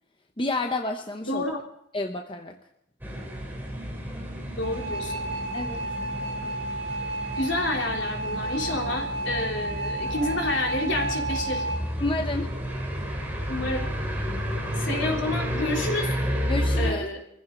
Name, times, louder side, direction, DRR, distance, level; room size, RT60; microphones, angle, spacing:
voice 1, 0.4-1.4 1.9-2.6 5.5-5.8 12.0-12.5 16.5-17.1, left 2 dB, 25° left, 4 dB, 0.9 m, -29 dB
voice 2, 1.2-1.6 4.5-5.2 7.3-11.7 13.5-13.9 14.8-16.2 16.8-17.2, left 2 dB, 70° left, 0 dB, 3.5 m, -29 dB
sound 1, 3.0-16.9, equal, 10° right, 3.2 m, -31 dB
sound 2, 4.6-11.8, right 2 dB, 85° right, 4.8 m, -32 dB
24.0 x 15.5 x 3.9 m, 0.74 s
head